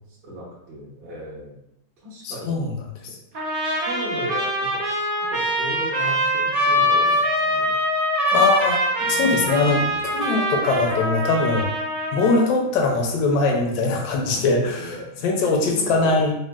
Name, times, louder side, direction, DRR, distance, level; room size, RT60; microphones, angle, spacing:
voice 1, 0.1-1.6 2.0-2.7 3.8-4.8 5.3-7.8 9.0-10.1 12.8-13.1 14.2-15.2 15.6-16.2, equal, 40° right, -8 dB, 0.7 m, -36 dB
voice 2, 2.2-2.7 8.3-11.7 12.1-14.7 15.2-16.3, left 3 dB, 80° left, 1 dB, 1.2 m, -21 dB
Trumpet, 3.3-12.5, equal, 75° right, 0.5 m, -23 dB
3.6 x 2.1 x 2.2 m, 0.79 s
omnidirectional pair, 1.9 m